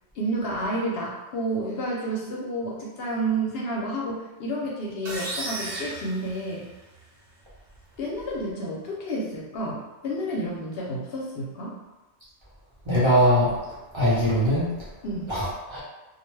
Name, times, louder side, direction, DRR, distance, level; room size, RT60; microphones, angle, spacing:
voice 1, 0.1-6.7 8.0-11.8 15.0-15.3, right 1 dB, 65° left, -4 dB, 0.8 m, -30 dB
sound 1, 5.1-7.0, right 2 dB, 85° right, 1.0 m, -34 dB
voice 2, 12.9-13.5 13.9-14.7 15.3-15.8, equal, 30° right, -10 dB, 0.7 m, -21 dB
2.4 x 2.1 x 3.1 m, 1.1 s
omnidirectional pair, 1.1 m